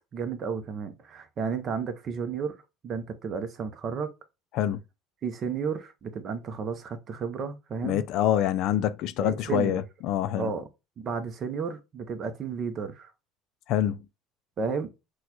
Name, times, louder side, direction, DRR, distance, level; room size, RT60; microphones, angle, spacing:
voice 1, 0.1-2.5 2.8-4.1 5.2-8.0 9.2-9.8 10.4-10.7 11.0-13.1 14.6-14.9, right 5 dB, 35° right, 0.8 m, -32 dB
voice 2, 7.8-10.5 13.7-14.0, left 11 dB, 60° left, 0.4 m, -26 dB
6.2 x 2.3 x 2.9 m
cardioid pair, 135°, 0 cm